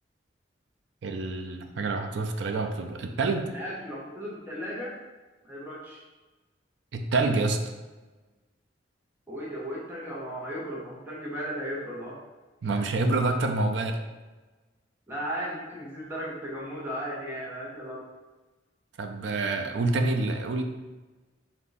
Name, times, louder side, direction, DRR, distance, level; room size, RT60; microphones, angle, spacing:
voice 1, 1.0-3.5 6.9-7.6 12.6-14.0 19.0-20.6, right 3 dB, 70° right, 5 dB, 0.4 m, -27 dB
voice 2, 3.5-5.0 5.4-6.0 9.3-12.2 12.7-12.8 15.1-18.1, equal, 10° right, -6 dB, 0.8 m, -36 dB
3.6 x 2.7 x 4.0 m, 1.2 s
head